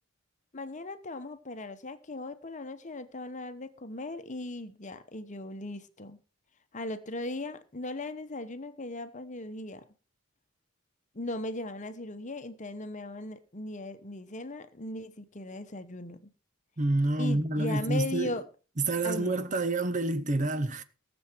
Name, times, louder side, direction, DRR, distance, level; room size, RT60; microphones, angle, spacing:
voice 1, 0.5-6.2 6.7-9.8 11.1-16.3 17.2-18.4 19.0-19.6, left 2 dB, 35° left, 1.0 m, -38 dB
voice 2, 16.8-18.4 18.8-20.8, right 2 dB, 35° right, 0.8 m, -28 dB
18.5 x 7.1 x 4.5 m
head